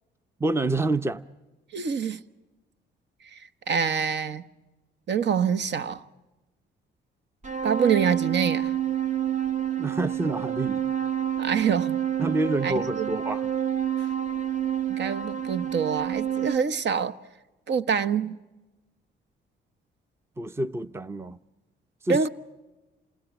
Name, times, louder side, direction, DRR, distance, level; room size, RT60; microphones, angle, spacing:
voice 1, 0.4-1.2 9.8-10.8 12.2-13.5 20.4-21.4 22.0-22.2, right 2 dB, 10° right, 0.7 m, -27 dB
voice 2, 1.7-2.2 3.7-4.4 5.1-6.0 7.6-8.7 11.4-12.0 12.6-13.1 14.9-17.1 17.7-18.4 22.1-22.3, right 7 dB, 60° right, 1.0 m, -25 dB
sound 1, 7.4-16.6, right 10 dB, 35° right, 1.2 m, -28 dB
28.5 x 19.5 x 7.3 m
cardioid pair, 90°, 20 cm